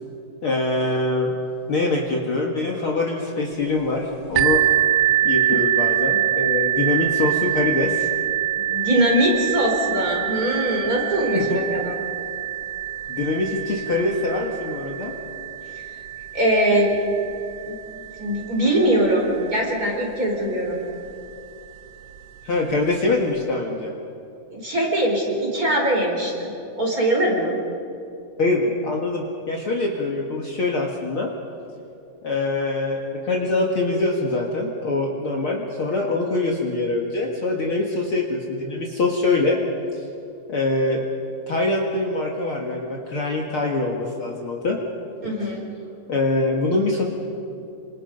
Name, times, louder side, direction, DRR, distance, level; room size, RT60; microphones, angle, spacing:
voice 1, 0.4-1.4 1.7-4.6 5.2-8.1 11.3-11.4 13.1-15.1 22.4-23.9 28.4-31.3 32.2-39.6 40.0-40.1 40.5-41.0 41.5-44.8 46.1-47.0, left 2 dB, 50° left, 0 dB, 2.2 m, -24 dB
sound 1, 4.4-19.9 20.7-20.8 21.3-21.4, right 12 dB, 65° right, 2.0 m, -25 dB
voice 2, 8.6-12.0 16.3-17.0 17.6-17.7 18.2-20.8 24.5-27.6 45.2-45.6, right 1 dB, 25° right, -1 dB, 4.8 m, -22 dB
27.0 x 26.5 x 5.4 m, 2.6 s
omnidirectional pair, 3.7 m